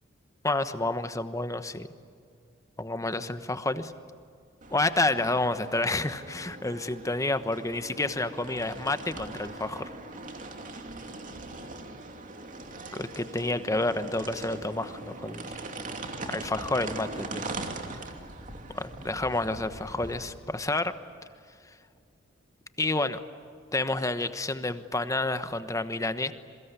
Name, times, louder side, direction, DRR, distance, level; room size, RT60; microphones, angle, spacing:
voice 1, 0.4-1.9 2.8-3.9 4.7-9.9 12.9-15.5 16.3-17.5 18.7-20.9 22.8-23.2 23.7-26.3, left 2 dB, 15° left, 10 dB, 1.1 m, -29 dB
sound 1, 4.6-20.3, right 2 dB, 40° right, 2.7 m, -41 dB
28.0 x 23.5 x 8.3 m, 2.3 s
head